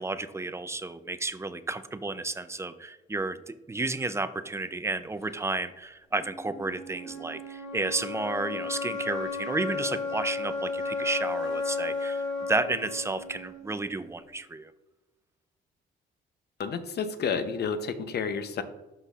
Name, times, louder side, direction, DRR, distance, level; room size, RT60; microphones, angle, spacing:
voice 1, 0.0-14.7, right 2 dB, 15° right, 12 dB, 0.4 m, -32 dB
sound 1, 6.1-14.1, left 3 dB, 75° left, 1.9 m, -34 dB
voice 2, 16.6-18.6, left 6 dB, 55° left, 10 dB, 0.7 m, -30 dB
12.0 x 4.1 x 2.4 m, 1.1 s
cardioid pair, 90°, 20 cm